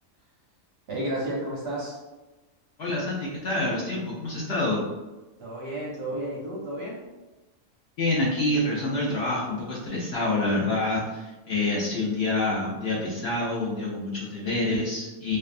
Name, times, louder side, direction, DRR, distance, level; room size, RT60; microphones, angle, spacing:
voice 1, 0.9-2.0 5.4-7.0, right 1 dB, 60° right, -5 dB, 0.7 m, -32 dB
voice 2, 2.8-4.8 8.0-15.4, left 2 dB, 65° left, -5 dB, 0.7 m, -27 dB
2.6 x 2.2 x 2.4 m, 1.1 s
omnidirectional pair, 1.4 m